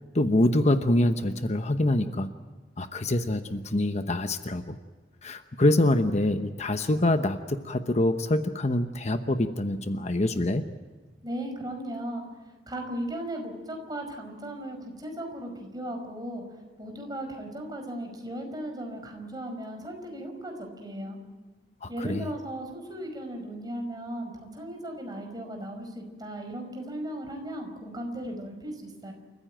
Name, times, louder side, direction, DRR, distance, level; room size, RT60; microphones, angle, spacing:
voice 1, 0.1-2.3 2.8-4.8 5.2-10.7 21.8-22.2, left 1 dB, 40° left, 8 dB, 1.0 m, -25 dB
voice 2, 11.2-12.2 12.7-16.4 16.8-21.2 21.9-29.1, right 1 dB, 20° right, 4 dB, 5.2 m, -36 dB
29.5 x 15.0 x 9.1 m, 1.4 s
head